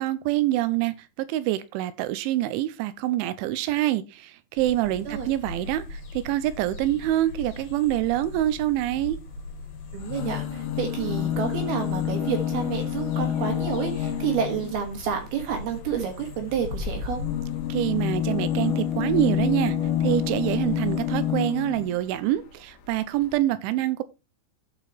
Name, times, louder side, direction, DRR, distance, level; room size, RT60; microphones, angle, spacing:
voice 1, 0.0-9.2 17.7-19.8 20.0-24.0, right 14 dB, 85° right, 3.1 m, -26 dB
sound 1, 4.6-21.4, left 3 dB, 45° left, 4.2 m, -41 dB
voice 2, 9.9-17.2, right 7 dB, 65° right, 3.1 m, -29 dB
sound 2, 10.0-14.9 16.5-22.0 22.9-23.0 23.2-23.3, left 10 dB, 75° left, 3.7 m, -28 dB
13.5 x 5.1 x 4.3 m
omnidirectional pair, 5.5 m